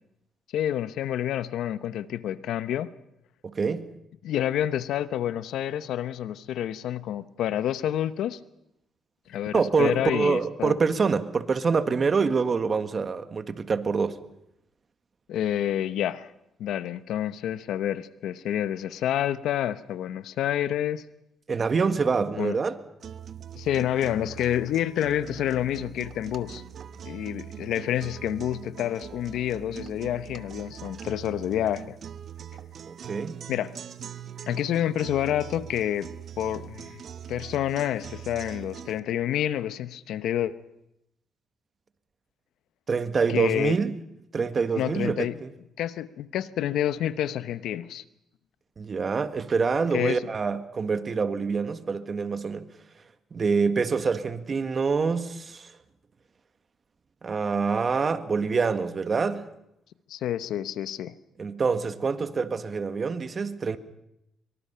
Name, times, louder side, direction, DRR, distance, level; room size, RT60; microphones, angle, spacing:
voice 1, 0.5-2.9 4.2-8.4 9.3-10.7 15.3-16.3 16.6-21.0 22.4-22.5 23.5-26.6 27.0-32.0 33.5-33.7 34.5-36.1 36.4-37.0 37.3-40.5 43.3-43.8 44.7-45.3 45.8-48.0 49.9-50.2 60.1-61.1, left 11 dB, 80° left, 0.9 m, -28 dB
voice 2, 3.4-3.9 9.5-14.2 21.5-22.8 32.9-33.4 42.9-43.9 44.3-45.5 48.8-52.6 53.3-55.7 57.2-59.5 61.4-63.8, right 5 dB, 40° right, 1.6 m, -26 dB
sound 1, 23.0-39.0, right 9 dB, 60° right, 1.1 m, -42 dB
24.0 x 24.0 x 5.7 m
cardioid pair, 90°, 0 cm